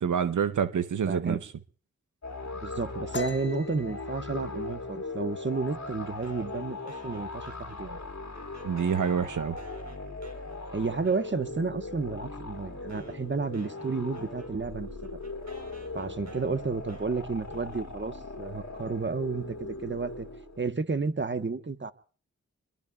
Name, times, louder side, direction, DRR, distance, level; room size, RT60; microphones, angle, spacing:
voice 1, 0.0-1.4 8.6-9.6, right 7 dB, 85° right, 0.7 m, -27 dB
voice 2, 1.1-1.4 2.6-8.0 10.7-14.9 15.9-20.3 20.6-21.9, right 4 dB, 40° right, 1.2 m, -32 dB
sound 1, 2.2-20.6, left 3 dB, 65° left, 2.4 m, -39 dB
sound 2, 3.1-6.6 6.9-7.2 7.6-8.1 8.4-9.2, left 2 dB, 40° left, 1.5 m, -42 dB
sound 3, 6.2-8.1 8.3-11.6 12.3-12.4 12.9-18.3, right 2 dB, 70° right, 4.3 m, -53 dB
25.5 x 22.0 x 2.4 m
cardioid pair, 45°, 30 cm